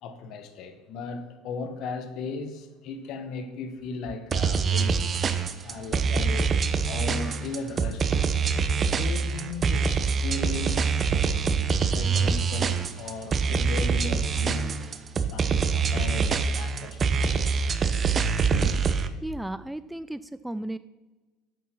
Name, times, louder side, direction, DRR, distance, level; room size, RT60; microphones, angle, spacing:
voice 1, 0.0-5.0 5.6-6.5 6.9-8.4 8.8-11.3 11.9-14.8 15.2-17.6 18.5-18.7, left 4 dB, 55° left, 1.1 m, -36 dB
sound 1, 4.3-19.1, right 5 dB, 35° right, 0.7 m, -25 dB
voice 2, 19.2-20.8, right 1 dB, 5° right, 0.3 m, -34 dB
8.3 x 6.9 x 6.1 m
hypercardioid pair, 70°, 0 cm